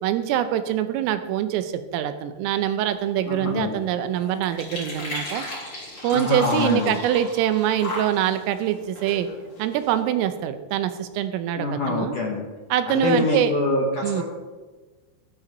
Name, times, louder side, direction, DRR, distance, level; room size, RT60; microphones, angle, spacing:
voice 1, 0.0-5.4 6.0-9.3 9.6-12.2 12.7-13.5 14.0-14.2, right 11 dB, 85° right, 10 dB, 3.5 m, -24 dB
sound 1, 2.9-10.1, left 1 dB, 25° left, 3.7 m, -36 dB
voice 2, 3.3-3.7 6.1-7.0 11.6-12.5 12.9-14.2, left 3 dB, 65° left, -1 dB, 2.0 m, -25 dB
16.5 x 12.0 x 4.0 m, 1.3 s
omnidirectional pair, 5.8 m